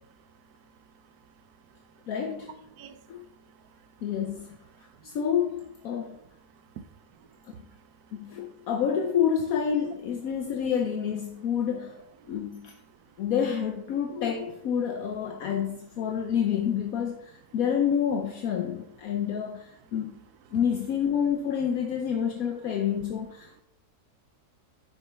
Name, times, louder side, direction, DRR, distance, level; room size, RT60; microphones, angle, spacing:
voice 1, 0.1-2.4 2.7-4.0 4.7-5.2 6.5-8.7 12.2-12.3 12.9-13.1 20.5-20.6, right 8 dB, 80° right, 1.1 m, -53 dB
voice 2, 2.1-2.5 3.1-3.2 4.0-4.5 5.0-6.2 7.6-7.7 8.1-12.7 13.2-20.2 20.5-23.6, left 8 dB, 70° left, 1.1 m, -28 dB
9.6 x 6.9 x 3.3 m
omnidirectional pair, 1.7 m